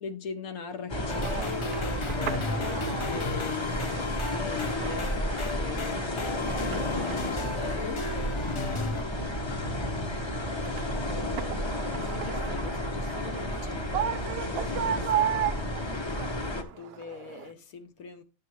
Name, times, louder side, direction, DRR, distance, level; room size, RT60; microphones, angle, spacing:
voice 1, 0.0-6.1 6.6-8.1 10.0-10.1 10.6-11.5 11.9-15.4 16.1-16.3 16.6-18.2, left 5 dB, 75° left, 1.2 m, -41 dB
sound 1, 0.9-16.6, left 1 dB, 25° left, 0.8 m, -32 dB
sound 2, 1.0-17.5, right 10 dB, 65° right, 0.6 m, -37 dB
sound 3, 1.1-9.0, left 2 dB, 45° left, 0.4 m, -35 dB
10.5 x 6.7 x 3.0 m
omnidirectional pair, 1.5 m